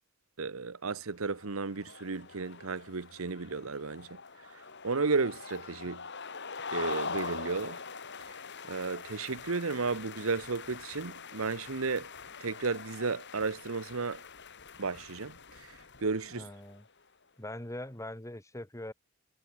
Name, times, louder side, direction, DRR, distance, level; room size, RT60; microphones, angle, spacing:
voice 1, 0.4-4.2 4.5-6.0 6.7-7.8 8.7-12.1 12.4-14.2 14.8-15.7 16.0-16.4, right 4 dB, 80° right, 1.0 m, -33 dB
sound 1, 1.2-16.9, left 5 dB, 55° left, 5.2 m, -43 dB
voice 2, 16.3-16.8 17.4-18.9, left 1 dB, 15° left, 2.6 m, -42 dB
head